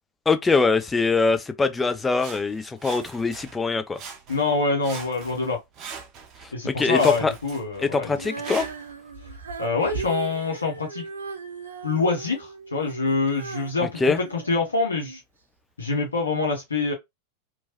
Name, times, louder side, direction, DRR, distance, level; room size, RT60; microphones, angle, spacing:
voice 1, 0.3-4.0 6.6-7.3 7.8-8.6 14.0-14.2, left 4 dB, 15° left, 0.4 m, -23 dB
Sawing, 2.2-3.6 3.9-4.6 4.8-6.5 6.9-8.9 9.6-9.7, right 6 dB, 35° right, 0.7 m, -41 dB
voice 2, 4.3-5.6 6.5-8.2 9.6-11.1 11.8-15.2 15.8-16.9, left 3 dB, 75° left, 0.7 m, -25 dB
Female singing, 8.1-15.2 15.8-15.9, right 4 dB, 70° right, 0.7 m, -37 dB
3.0 x 2.2 x 2.9 m
figure-of-eight pair, 90°, 0 cm